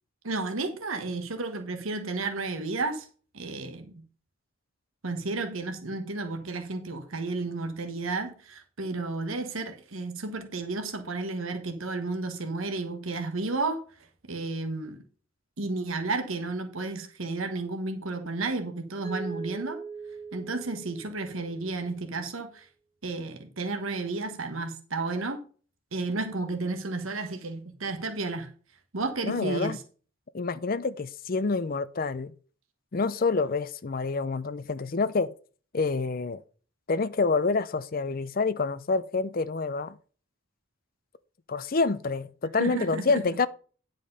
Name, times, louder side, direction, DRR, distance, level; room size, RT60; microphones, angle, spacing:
voice 1, 0.2-3.1 3.3-4.0 5.0-13.8 14.3-15.0 15.6-19.8 20.3-22.7 23.0-25.4 25.9-28.5 28.9-29.8 42.6-43.2, right 3 dB, 80° right, 1.2 m, -32 dB
Mallet percussion, 19.0-21.9, right 5 dB, 30° right, 3.2 m, -41 dB
voice 2, 29.2-29.8 30.3-32.3 32.9-35.3 35.7-36.4 36.9-40.0 41.5-43.5, left 4 dB, 45° left, 0.5 m, -27 dB
9.7 x 5.2 x 5.4 m
head